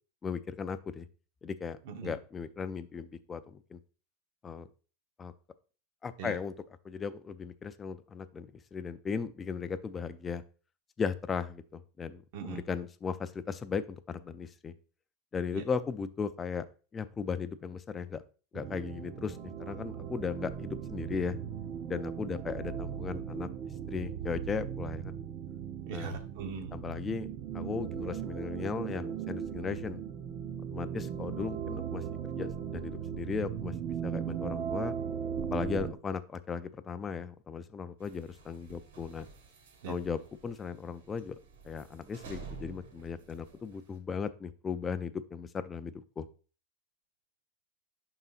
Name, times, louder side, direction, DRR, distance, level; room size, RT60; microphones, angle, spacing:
voice 1, 0.2-1.1 1.4-3.8 4.4-4.7 5.2-5.3 6.0-6.5 6.8-10.4 11.0-14.7 15.3-16.7 16.9-18.2 18.5-21.4 21.9-23.5 23.9-25.2 25.9-26.2 26.7-30.0 30.7-32.0 32.3-34.9 35.5-39.3 39.9-41.4 41.6-46.3, left 5 dB, 15° left, 11 dB, 0.3 m, -37 dB
voice 2, 1.8-2.2 6.2-6.4 12.3-12.6 15.5-15.6 25.9-26.8 39.8-39.9, right 6 dB, 55° right, 6 dB, 1.0 m, -40 dB
sound 1, 18.5-35.9, right 8 dB, 30° right, 0.6 m, -38 dB
sound 2, 38.0-44.0, right 5 dB, 85° right, 1.6 m, -51 dB
11.0 x 4.0 x 2.4 m, 0.36 s
supercardioid pair, 170°, 0 cm